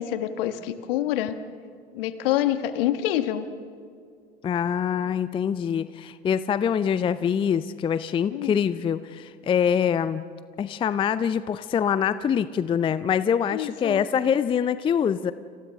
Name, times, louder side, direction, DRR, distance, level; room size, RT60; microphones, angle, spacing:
voice 1, 0.0-1.4 1.9-3.5 8.3-8.6 13.5-14.0, left 12 dB, 60° left, 10 dB, 1.5 m, -26 dB
voice 2, 4.4-10.2 10.6-15.3, left 8 dB, 15° left, 15 dB, 0.5 m, -24 dB
30.0 x 27.5 x 3.6 m, 2.1 s
figure-of-eight pair, 80°, 32 cm